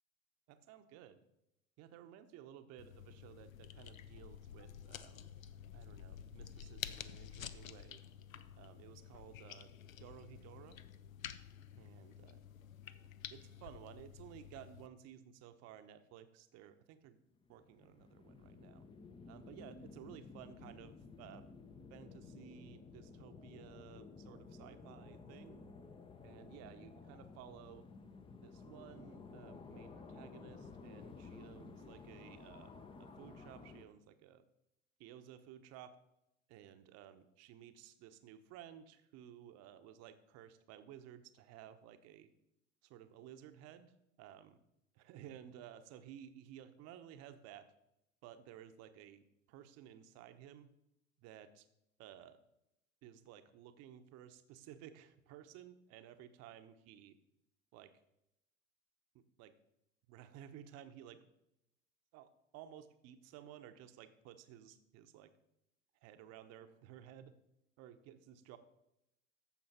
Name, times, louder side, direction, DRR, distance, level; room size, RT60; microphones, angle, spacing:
voice 1, 0.5-1.2 1.8-5.3 5.7-8.0 8.5-9.7 10.0-10.8 11.8-12.4 13.3-17.2 17.5-18.8 19.3-21.5 21.9-25.7 26.2-27.8 28.4-32.7 33.0-34.4 35.0-36.0 36.5-42.3 42.8-44.6 44.9-47.7 48.2-50.7 51.2-51.7 52.0-52.4 53.0-57.2 57.7-57.9 59.1-59.5 60.1-61.2 62.1-65.3 66.0-67.3 67.8-68.6, right 10 dB, 40° right, 9 dB, 1.0 m, -55 dB
sound 1, 2.8-14.9, left 9 dB, 75° left, 0.7 m, -50 dB
sound 2, 17.3-33.9, left 4 dB, 15° left, 0.7 m, -54 dB
14.0 x 6.1 x 4.3 m, 0.84 s
figure-of-eight pair, 90°, 41 cm